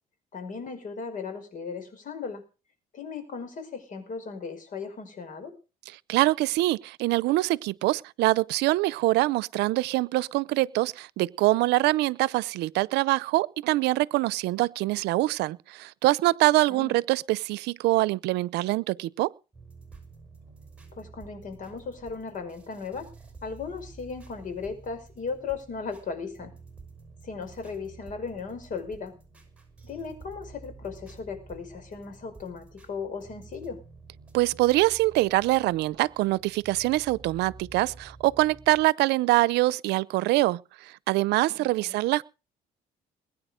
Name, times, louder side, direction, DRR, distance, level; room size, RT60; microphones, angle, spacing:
voice 1, 0.3-2.4 2.9-5.5 16.7-17.0 20.9-23.1 23.4-26.5 27.2-29.1 29.8-33.8 41.6-42.0, left 5 dB, 50° left, 5.4 m, -37 dB
voice 2, 6.1-19.3 34.3-42.2, right 19 dB, 85° right, 0.6 m, -24 dB
sound 1, 19.5-38.9, right 4 dB, 5° right, 6.3 m, -50 dB
21.5 x 9.7 x 5.0 m
cardioid pair, 110°, 17 cm